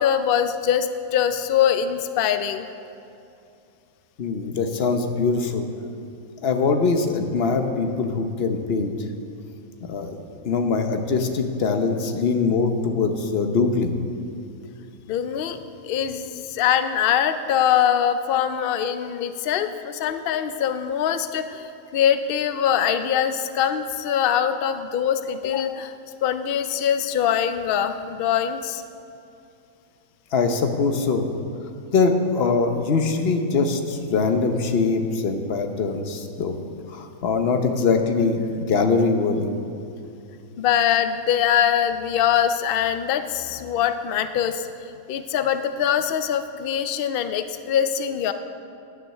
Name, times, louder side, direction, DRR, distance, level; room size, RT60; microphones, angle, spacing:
voice 1, 0.0-2.7 11.6-11.8 15.1-15.6 15.8-25.9 26.2-28.8 40.6-44.7 45.1-48.3, left 9 dB, 85° left, 9 dB, 0.5 m, -23 dB
voice 2, 4.2-5.7 6.4-8.9 9.9-10.2 10.4-13.9 30.3-31.3 31.9-36.6 36.9-39.5, left 4 dB, 50° left, 6 dB, 1.0 m, -22 dB
9.8 x 9.4 x 6.6 m, 2.6 s
omnidirectional pair, 1.5 m